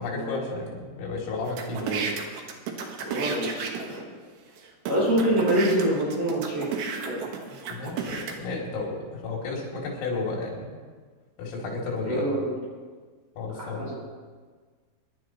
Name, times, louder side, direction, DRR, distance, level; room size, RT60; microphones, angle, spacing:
voice 1, 0.0-2.0 7.7-10.8 11.4-12.3 13.4-13.9, left 3 dB, 80° left, -2 dB, 5.4 m, -32 dB
sound 1, 1.5-4.0 4.6-4.7 4.9-8.3, right 6 dB, 65° right, 2.7 m, -33 dB
voice 2, 3.0-4.0 4.9-7.2 12.0-12.5 13.6-13.9, right 1 dB, 35° right, -6 dB, 6.1 m, -26 dB
25.5 x 11.0 x 3.0 m, 1.5 s
omnidirectional pair, 5.8 m